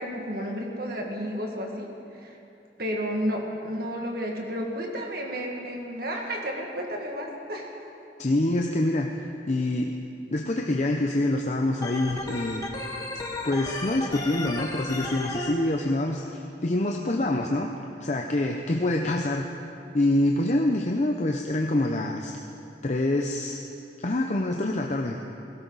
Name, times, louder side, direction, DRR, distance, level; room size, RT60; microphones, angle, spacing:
voice 1, 0.0-1.9 2.2-2.3 2.8-7.7, equal, 55° right, 0 dB, 2.0 m, -32 dB
voice 2, 8.2-9.1 9.5-10.0 10.3-12.6 13.4-17.7 18.0-19.5 19.9-22.3 22.8-23.6 24.0-25.2, left 1 dB, 40° left, 2 dB, 0.7 m, -26 dB
Organ, 11.8-15.5, left 2 dB, 20° left, 1.3 m, -33 dB
18.0 x 16.5 x 4.1 m, 2.7 s
head